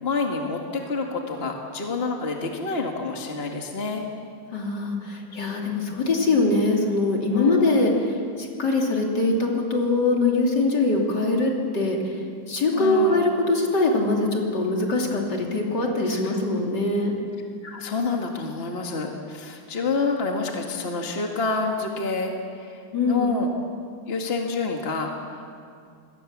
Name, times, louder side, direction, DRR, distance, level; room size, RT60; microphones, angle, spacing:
voice 1, 0.0-4.0 7.3-7.7 12.7-13.2 16.1-16.3 17.0-17.1 17.6-22.3 22.6-22.8 23.1-23.5 24.1-25.6, left 4 dB, 35° left, 1 dB, 2.1 m, -28 dB
voice 2, 4.5-17.1 22.9-23.4, left 2 dB, 65° left, 0 dB, 3.6 m, -23 dB
27.0 x 20.5 x 7.4 m, 2.3 s
omnidirectional pair, 2.0 m